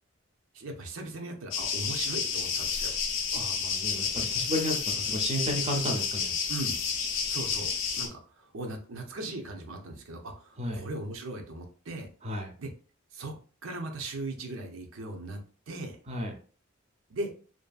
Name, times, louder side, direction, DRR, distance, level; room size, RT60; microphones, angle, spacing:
voice 1, 0.5-3.0 6.5-6.8 7.3-12.1 12.6-12.7 13.1-13.3 13.6-15.4 15.7-16.0 17.1-17.3, right 2 dB, 85° right, 3 dB, 0.6 m, -38 dB
sound 1, 1.5-8.1, left 6 dB, 70° left, 0.5 m, -30 dB
voice 2, 3.3-6.3 10.6-10.8 12.2-12.5 16.1-16.3, equal, 30° right, 2 dB, 0.6 m, -33 dB
2.6 x 2.6 x 2.3 m, 0.40 s
head